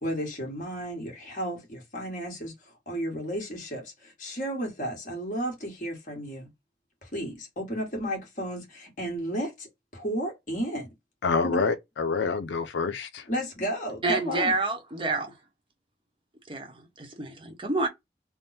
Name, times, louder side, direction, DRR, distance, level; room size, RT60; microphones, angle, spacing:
voice 1, 0.0-2.5 2.9-6.5 7.0-10.9 11.4-11.6 13.3-14.5, right 1 dB, 45° left, 1.6 m, -33 dB
voice 2, 11.2-13.3, left 4 dB, 85° left, 0.5 m, -27 dB
voice 3, 14.0-15.3 16.5-17.9, right 2 dB, 30° right, 0.9 m, -28 dB
3.5 x 2.1 x 4.1 m
head